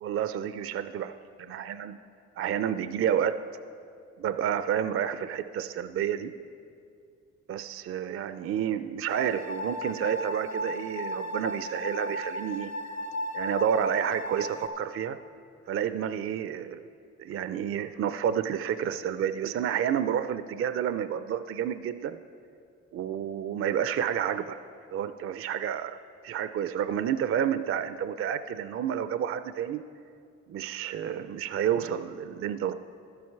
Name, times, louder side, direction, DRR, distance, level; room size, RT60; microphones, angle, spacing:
voice 1, 0.0-1.1 1.4-2.0 2.4-3.4 4.2-6.3 7.5-12.7 13.3-15.2 15.7-16.9 17.2-22.2 22.9-24.6 24.9-26.0 26.2-29.8 30.5-32.7, right 9 dB, 50° right, 12 dB, 0.4 m, -30 dB
sound 1, 9.1-14.7, equal, 60° left, 1.1 m, -35 dB
12.0 x 9.5 x 4.6 m, 2.4 s
cardioid pair, 90°, 30 cm